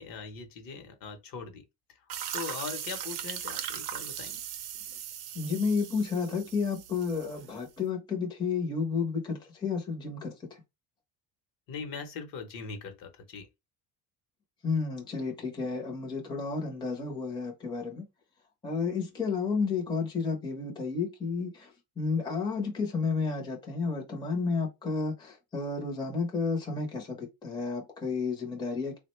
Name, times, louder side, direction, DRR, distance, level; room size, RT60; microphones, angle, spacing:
voice 1, 0.0-1.6 1.9-4.4 11.7-13.5, left 5 dB, 55° left, 0.9 m, -41 dB
sound 1, 2.1-7.7, right 10 dB, 65° right, 0.6 m, -39 dB
voice 2, 5.3-10.6 14.6-18.0 18.6-29.0, left 4 dB, 10° left, 0.7 m, -31 dB
3.6 x 2.2 x 3.0 m
cardioid pair, 145°, 41 cm